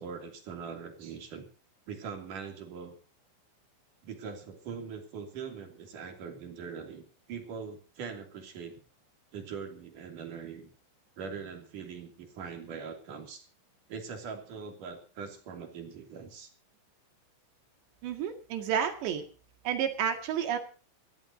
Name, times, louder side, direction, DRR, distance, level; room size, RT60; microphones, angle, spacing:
voice 1, 0.0-1.5 1.9-2.9 4.0-8.8 9.3-10.7 11.2-13.5 13.9-16.5, right 6 dB, 45° right, 4 dB, 3.9 m, -42 dB
voice 2, 18.0-19.2 19.7-20.6, right 8 dB, 65° right, 6 dB, 4.1 m, -30 dB
27.5 x 13.0 x 2.8 m, 0.33 s
omnidirectional pair, 5.7 m